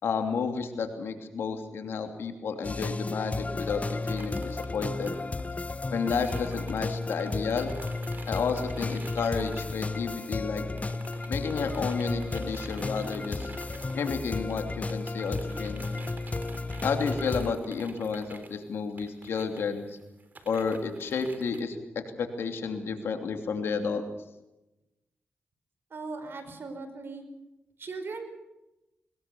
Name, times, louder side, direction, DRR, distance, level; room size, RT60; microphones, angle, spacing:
voice 1, 0.0-5.1 5.9-7.7 8.3-10.6 11.3-13.5 13.9-14.6 14.9-15.8 16.8-20.0 20.4-24.0, left 5 dB, 80° left, 6 dB, 2.9 m, -31 dB
sound 1, 2.6-17.5, left 3 dB, 35° left, 1.1 m, -33 dB
sound 2, 3.6-10.5 10.8-21.6, right 3 dB, 50° right, 3.7 m, -49 dB
voice 2, 25.9-27.2 27.8-28.3, right 3 dB, 65° right, 8 dB, 4.9 m, -38 dB
21.5 x 20.5 x 7.0 m, 0.96 s
supercardioid pair, 45°, 4 cm